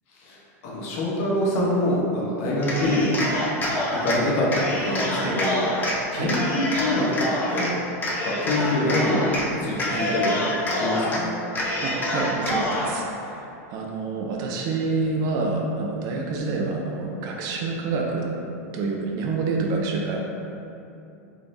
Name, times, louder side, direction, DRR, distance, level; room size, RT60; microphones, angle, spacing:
voice 1, 0.6-3.1 4.0-4.5 4.8-5.6 6.1-7.7 8.2-10.3 10.7-11.3, left 1 dB, 60° left, -5 dB, 1.0 m, -25 dB
Cheering, 2.6-4.2 4.5-6.0 6.3-7.7 8.0-9.5 9.7-11.2 11.5-12.9, left 1 dB, 20° left, 0.7 m, -26 dB
voice 2, 11.8-13.4 13.7-18.2 18.7-20.2, right 3 dB, 45° right, 0 dB, 0.5 m, -27 dB
3.6 x 3.3 x 2.6 m, 2.8 s
supercardioid pair, 120°, 9 cm